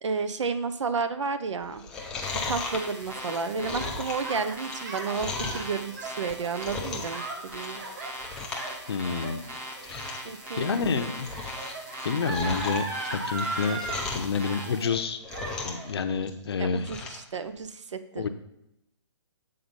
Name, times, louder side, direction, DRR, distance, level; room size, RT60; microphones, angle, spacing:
voice 1, 0.0-1.8 2.4-7.8 10.2-10.8 16.6-18.3, right 5 dB, 75° right, 11 dB, 0.7 m, -32 dB
Gasp, 1.6-14.1 14.4-15.0 15.3-15.9, right 2 dB, 40° right, 1.3 m, -38 dB
Chewing mastication, 1.7-5.7 6.2-7.2 7.5-7.9 8.2-8.7 9.0-9.1 9.5-9.6 9.8-10.3 10.7-11.7 12.0-14.4 14.8-15.9 16.2-17.2 17.6-17.7, left 4 dB, 5° left, 0.4 m, -36 dB
sound 1, 2.2-14.8, right 1 dB, 10° right, 0.9 m, -41 dB
voice 2, 8.9-9.4 9.9-10.1 10.6-11.3 12.0-13.8 14.1-15.2 15.6-16.9 18.2-18.3, left 5 dB, 55° left, 8 dB, 0.8 m, -28 dB
7.7 x 3.9 x 5.3 m, 0.83 s
hypercardioid pair, 160°, 15 cm